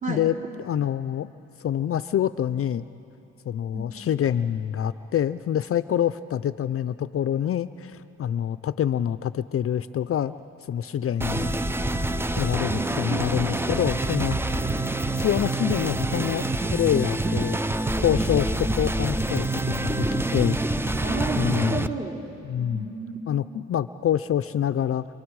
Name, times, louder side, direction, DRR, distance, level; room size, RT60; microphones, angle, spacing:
voice 1, 0.6-1.3 1.6-2.9 3.5-10.4 10.7-11.5 12.4-12.7 13.0-14.3 15.2-16.4 16.7-17.6 18.0-20.6 21.4-21.8 22.5-22.9 23.3-25.1, left 10 dB, 50° left, 14 dB, 0.5 m, -26 dB
sound 1, 11.2-21.9, right 2 dB, 10° right, 0.7 m, -26 dB
voice 2, 12.7-13.6 21.0-22.2 22.6-23.2, right 4 dB, 25° right, 0 dB, 3.7 m, -32 dB
28.0 x 27.0 x 4.8 m, 2.7 s
cardioid pair, 90°, 30 cm